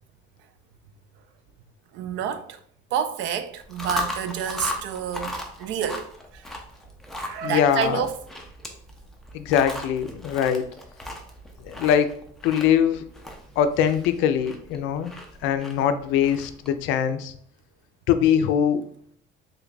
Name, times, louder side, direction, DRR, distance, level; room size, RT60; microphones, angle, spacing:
voice 1, 1.9-2.6 2.9-6.1 6.3-6.4 7.2-8.1, right 8 dB, 65° right, 0.4 m, -29 dB
Chewing mastication, 3.6-16.8, left 1 dB, ahead, 0.3 m, -37 dB
voice 2, 7.4-8.0 9.3-10.7 11.6-12.2 12.4-13.1 13.6-15.1 15.4-17.3 18.1-18.8, left 8 dB, 70° left, 0.4 m, -22 dB
3.3 x 2.3 x 3.8 m
cardioid pair, 170°, 21 cm